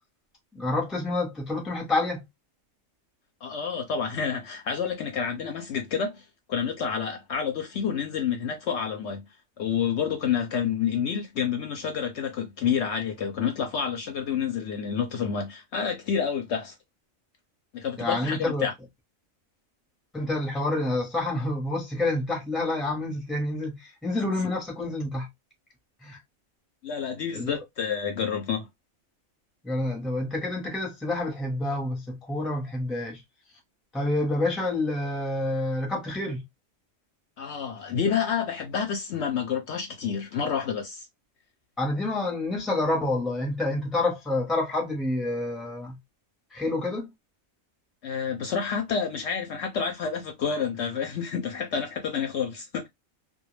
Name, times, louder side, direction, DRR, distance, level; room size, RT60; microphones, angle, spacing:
voice 1, 0.5-2.2 18.0-18.7 20.1-25.3 26.0-26.2 27.3-27.5 29.6-33.2 33.9-36.4 41.8-46.0 46.5-47.1, left 2 dB, ahead, 0.6 m, -28 dB
voice 2, 3.4-6.2 6.5-9.3 9.6-16.7 17.7-18.7 26.8-28.7 37.4-41.1 48.0-52.9, left 7 dB, 65° left, 0.8 m, -29 dB
2.2 x 2.2 x 3.0 m
omnidirectional pair, 1.4 m